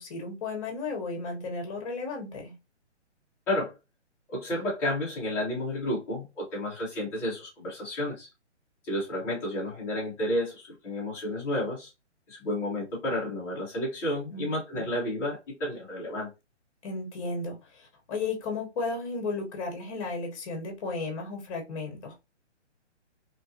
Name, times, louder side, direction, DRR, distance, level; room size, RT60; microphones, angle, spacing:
voice 1, 0.0-2.5 14.3-15.0 16.8-22.2, left 3 dB, 30° left, 1.0 m, -34 dB
voice 2, 4.3-8.3 8.8-11.9 12.3-16.3, left 1 dB, 5° left, 0.6 m, -31 dB
2.9 x 2.5 x 2.7 m
hypercardioid pair, 155°, 35 cm